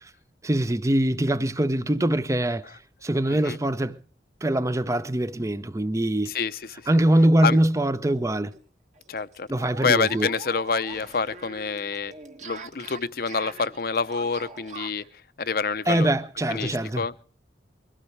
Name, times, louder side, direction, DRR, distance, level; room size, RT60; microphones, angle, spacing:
voice 1, 0.4-2.7 3.0-4.0 4.4-6.3 6.9-8.5 9.5-10.3 15.9-17.0, right 1 dB, 20° right, 0.6 m, -23 dB
voice 2, 6.3-6.8 7.4-7.6 9.1-9.5 9.8-12.1 12.4-15.0 15.4-16.1 16.5-17.1, left 5 dB, 55° left, 0.7 m, -27 dB
sound 1, 8.1-8.2 8.5-8.6 9.0-15.1, right 3 dB, 40° right, 1.4 m, -43 dB
22.5 x 16.5 x 3.3 m
head